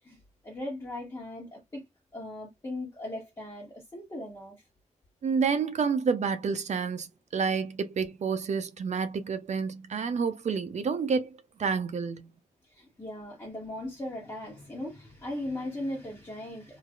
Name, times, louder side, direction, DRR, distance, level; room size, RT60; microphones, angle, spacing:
voice 1, 0.0-1.8 2.1-4.6 12.6-16.8, left 1 dB, 25° left, 1.3 m, -38 dB
voice 2, 5.2-12.3, right 5 dB, 60° right, 0.4 m, -29 dB
3.2 x 2.4 x 2.3 m
wide cardioid pair, 125°, 13 cm